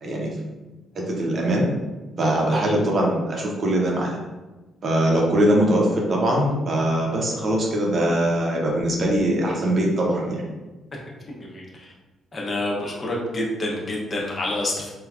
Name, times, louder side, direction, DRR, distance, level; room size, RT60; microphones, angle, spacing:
voice 1, 0.0-0.3 0.9-1.7 2.2-4.2 4.8-10.4, right 1 dB, 45° right, -2 dB, 0.7 m, -22 dB
voice 2, 11.1-11.9 12.3-14.9, left 1 dB, 35° left, -3 dB, 0.8 m, -28 dB
3.2 x 2.3 x 2.4 m, 1.2 s
cardioid pair, 90°, 0 cm